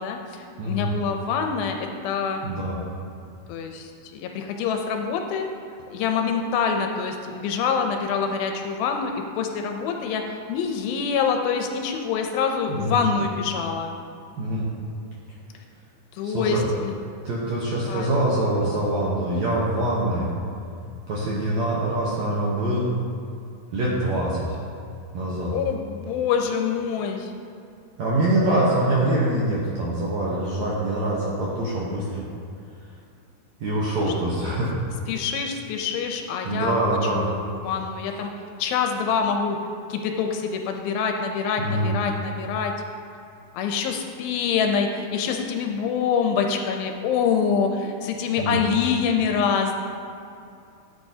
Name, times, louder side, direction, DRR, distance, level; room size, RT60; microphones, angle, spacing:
voice 1, 0.0-2.4 3.5-5.5 5.9-10.2 10.5-14.0 16.1-16.9 17.9-18.5 25.5-27.3 31.6-31.7 34.4-34.6 35.1-37.0 37.6-38.3 38.6-39.6 39.9-42.7 43.6-49.8, left 6 dB, 80° left, 4 dB, 2.3 m, -25 dB
voice 2, 0.6-0.9 2.4-2.8 12.7-13.0 14.4-14.7 16.2-16.7 17.2-20.3 21.1-22.9 23.7-24.5 25.1-25.5 28.0-32.3 33.6-34.7 36.4-37.3 41.6-41.9 48.4-48.6, right 1 dB, 70° right, -6 dB, 1.7 m, -24 dB
12.5 x 8.0 x 2.7 m, 2.5 s
omnidirectional pair, 4.5 m